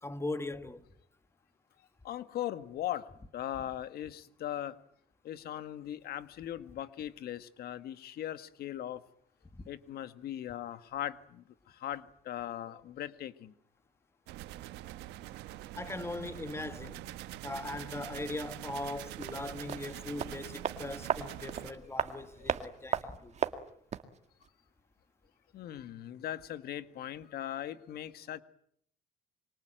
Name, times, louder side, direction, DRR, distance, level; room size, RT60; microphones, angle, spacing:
voice 1, 0.0-0.8 9.5-9.7 15.8-17.0 17.4-23.3, left 2 dB, 15° left, 1.6 m, -40 dB
voice 2, 2.0-3.1 3.3-4.8 5.2-9.0 9.7-11.4 11.7-13.5 21.7-21.9 22.4-22.5 25.5-28.4, left 12 dB, 65° left, 1.6 m, -39 dB
sound 1, 14.3-21.7, right 15 dB, 90° right, 1.4 m, -44 dB
sound 2, 19.2-24.2 24.4-24.5, right 7 dB, 40° right, 2.1 m, -36 dB
26.0 x 24.0 x 9.1 m
cardioid pair, 110°, 17 cm